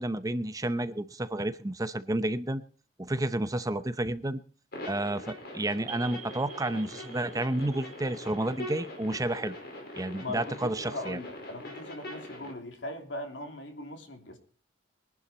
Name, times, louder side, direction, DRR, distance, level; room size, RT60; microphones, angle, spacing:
voice 1, 0.0-2.6 3.0-4.4 4.9-9.5 10.0-11.2, right 1 dB, 20° right, 13 dB, 0.7 m, -31 dB
sound 1, 4.7-12.5, left 1 dB, 55° left, 4.9 m, -42 dB
sound 2, 5.9-10.3, right 10 dB, 40° right, 2.1 m, -50 dB
voice 2, 10.2-14.4, left 1 dB, 75° left, 5 dB, 3.0 m, -40 dB
22.5 x 11.0 x 4.3 m, 0.41 s
head